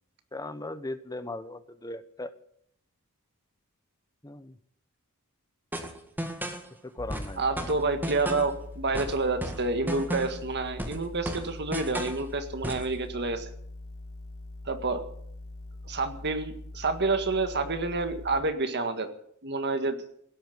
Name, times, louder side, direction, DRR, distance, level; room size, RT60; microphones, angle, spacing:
voice 1, 0.3-2.3 4.2-4.6 6.8-7.4, left 2 dB, 15° left, 12 dB, 0.9 m, -38 dB
sound 1, 5.7-6.7 7.1-8.6 8.9-10.5 10.8-12.2 12.6-12.9, right 1 dB, 10° right, 1.9 m, -34 dB
sound 2, 7.0-18.4, left 2 dB, 80° left, 4.4 m, -43 dB
voice 2, 7.4-13.5 14.7-15.0 15.9-19.1 19.4-20.0, right 3 dB, 50° right, 8 dB, 1.8 m, -28 dB
17.0 x 8.8 x 9.5 m, 0.68 s
head